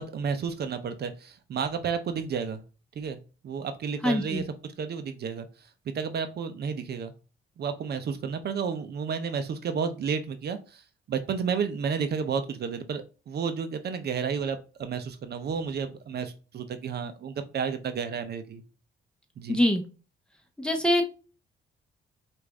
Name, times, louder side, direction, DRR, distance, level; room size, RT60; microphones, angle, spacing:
voice 1, 0.0-2.6 3.0-3.2 3.4-4.4 4.8-5.5 5.9-7.1 7.6-10.8 11.1-18.6 19.4-19.6, right 6 dB, 55° right, 9 dB, 0.6 m, -31 dB
voice 2, 4.0-4.4 19.5-19.8 20.6-21.0, equal, 5° left, 4 dB, 0.9 m, -23 dB
4.9 x 2.5 x 3.5 m, 0.34 s
cardioid pair, 90°, 20 cm